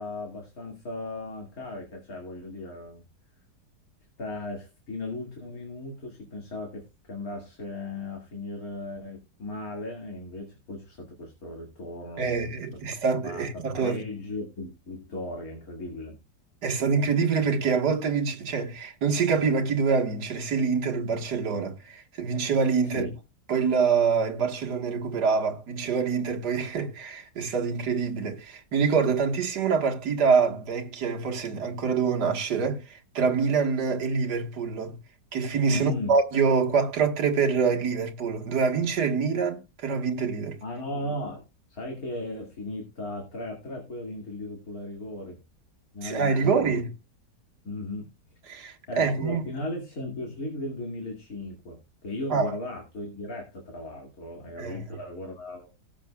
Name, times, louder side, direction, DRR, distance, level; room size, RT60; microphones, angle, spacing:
voice 1, 0.0-3.0 4.2-12.5 13.2-16.2 22.8-23.1 35.7-36.1 40.6-41.4 41.7-45.4 45.9-46.7 47.6-48.1 48.9-51.8 52.0-55.8, left 2 dB, 55° left, 2.7 m, -36 dB
voice 2, 12.2-14.0 16.6-23.1 23.5-34.9 35.3-40.6 46.0-46.9 48.5-49.4 52.3-52.5 54.6-54.8, right 5 dB, 65° right, 2.0 m, -25 dB
18.0 x 7.4 x 2.3 m
omnidirectional pair, 1.9 m